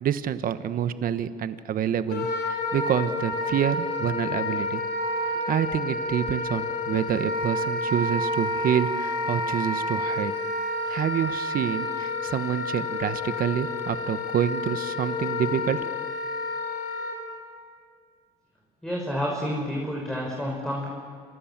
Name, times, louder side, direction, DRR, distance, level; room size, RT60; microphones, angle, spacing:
voice 1, 0.0-4.8 5.5-10.3 10.9-15.9, right 9 dB, 55° right, 12 dB, 1.3 m, -27 dB
Wind instrument woodwind instrument, 2.1-17.2, left 2 dB, 75° left, 6.1 m, -29 dB
voice 2, 18.8-20.9, equal, 5° left, -2 dB, 5.7 m, -29 dB
28.0 x 27.5 x 7.5 m, 2.1 s
cardioid pair, 110°, 17 cm